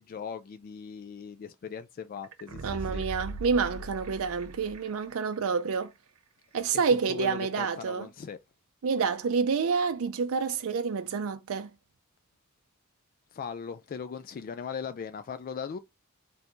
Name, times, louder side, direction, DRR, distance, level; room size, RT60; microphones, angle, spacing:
voice 1, 0.0-3.0 6.9-8.4 13.3-15.8, left 6 dB, 40° left, 0.3 m, -39 dB
sound 1, 2.2-5.1 5.5-5.6, right 3 dB, 85° right, 0.8 m, -40 dB
voice 2, 2.6-5.9 6.5-8.1 8.8-11.7, right 5 dB, 65° right, 0.4 m, -28 dB
3.4 x 2.6 x 4.3 m
head